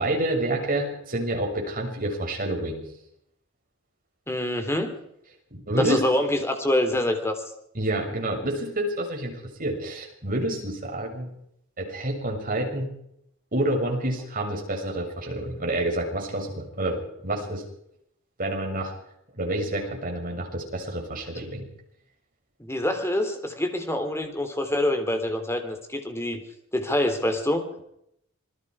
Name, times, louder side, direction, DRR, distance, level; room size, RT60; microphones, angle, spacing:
voice 1, 0.0-2.8 5.5-6.0 7.8-11.3 11.8-12.9 13.5-17.6 18.4-18.9 19.3-21.7, right 1 dB, 40° right, 1 dB, 7.2 m, -28 dB
voice 2, 4.3-5.0 5.8-7.4 22.6-26.4 26.7-27.6, left 1 dB, 10° left, 6 dB, 3.4 m, -25 dB
27.0 x 21.0 x 5.0 m, 0.75 s
head